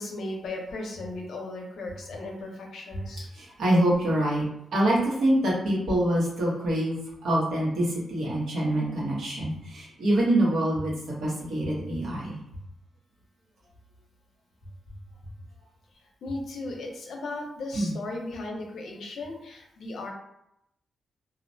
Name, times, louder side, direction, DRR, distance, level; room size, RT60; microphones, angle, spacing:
voice 1, 0.0-3.3 16.2-20.1, left 2 dB, 80° left, 0 dB, 0.6 m, -36 dB
voice 2, 3.3-4.4 4.7-10.9 11.2-12.4 17.7-18.0, right 1 dB, 80° right, -5 dB, 1.0 m, -25 dB
2.4 x 2.1 x 2.6 m, 0.80 s
cardioid pair, 105°, 0 cm